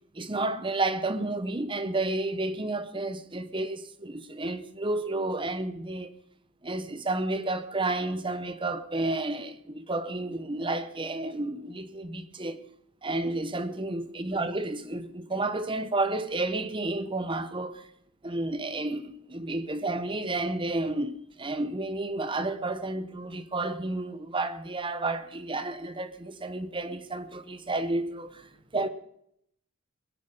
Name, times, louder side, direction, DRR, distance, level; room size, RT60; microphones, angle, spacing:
voice 1, 0.1-6.1 6.6-12.6 13.0-17.9 18.2-28.9, right 2 dB, 25° right, 1.0 m, -31 dB
21.0 x 10.5 x 5.5 m
head